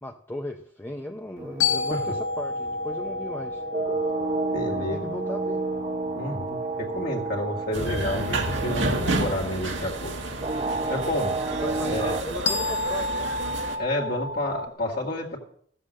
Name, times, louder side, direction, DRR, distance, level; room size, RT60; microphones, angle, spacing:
voice 1, 0.0-3.6 4.7-5.6 7.8-7.9 11.6-13.3, left 1 dB, 10° left, 2 dB, 0.7 m, -36 dB
sound 1, 1.4-14.7, left 4 dB, 70° left, 0.9 m, -33 dB
sound 2, 1.4-12.2, right 3 dB, 30° right, 0.5 m, -31 dB
voice 2, 4.5-5.0 6.2-10.1 10.9-11.3 11.9-12.2 13.8-15.4, left 1 dB, 55° left, -2 dB, 2.2 m, -30 dB
sound 3, 7.7-13.8, right 2 dB, 80° right, 1.8 m, -30 dB
15.0 x 7.6 x 6.4 m, 0.62 s
head